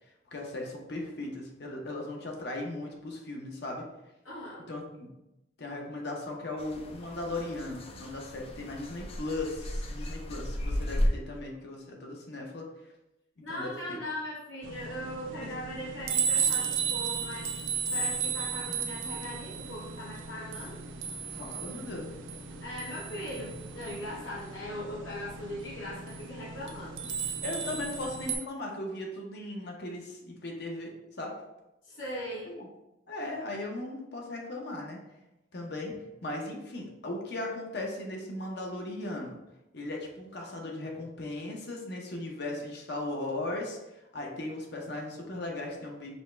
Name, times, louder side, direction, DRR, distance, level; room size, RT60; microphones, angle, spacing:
voice 1, 0.3-3.8 4.7-5.1 5.6-12.7 13.5-14.0 15.4-15.6 21.3-22.1 27.4-31.3 32.5-32.7 33.1-35.0 35.5-35.9 36.2-39.4 39.7-43.8 44.1-46.2, left 2 dB, 60° left, 0 dB, 0.8 m, -37 dB
voice 2, 4.2-4.7 13.4-17.5 17.9-20.8 22.6-26.9 31.8-32.5, left 1 dB, 80° left, -8 dB, 1.1 m, -39 dB
sound 1, 6.6-11.1, equal, 30° left, 0.4 m, -34 dB
sound 2, 14.6-28.4, right 6 dB, 80° right, 0.5 m, -35 dB
5.4 x 2.2 x 3.2 m, 0.93 s
head